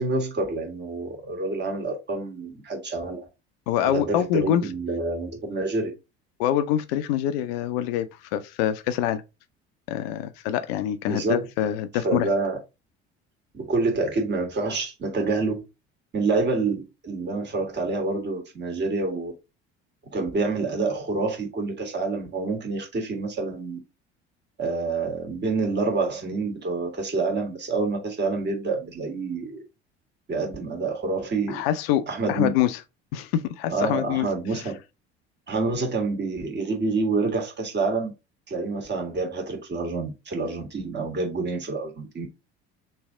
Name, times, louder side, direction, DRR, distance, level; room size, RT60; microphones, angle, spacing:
voice 1, 0.0-3.2 3.8-5.9 11.1-11.5 12.0-12.6 13.5-15.6 16.1-19.3 20.1-23.8 24.6-29.6 30.3-31.6 32.1-32.5 33.7-34.8 35.5-38.1 38.5-42.2, right 3 dB, 35° right, 1.5 m, -27 dB
voice 2, 3.7-4.6 6.4-9.2 9.9-12.3 31.5-32.8 33.1-34.3, left 11 dB, 65° left, 0.5 m, -25 dB
3.2 x 2.6 x 3.5 m
hypercardioid pair, 65°, 32 cm